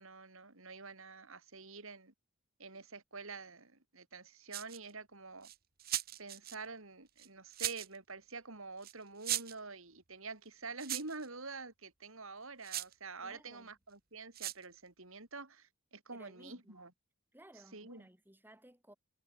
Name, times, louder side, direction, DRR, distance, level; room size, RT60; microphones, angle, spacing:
voice 1, 0.0-2.1 2.6-5.5 6.2-16.9 17.7-18.0, right 4 dB, 65° right, 3.4 m, -47 dB
sound 1, 4.5-4.9 5.4-6.6 7.2-8.0 8.8-8.9 9.2-9.6 10.8-11.3 12.6-12.9 14.3-14.6, right 13 dB, 40° right, 1.4 m, -38 dB
voice 2, 13.2-13.7 16.1-16.9 17.3-19.0, right 1 dB, 10° right, 5.8 m, -58 dB
head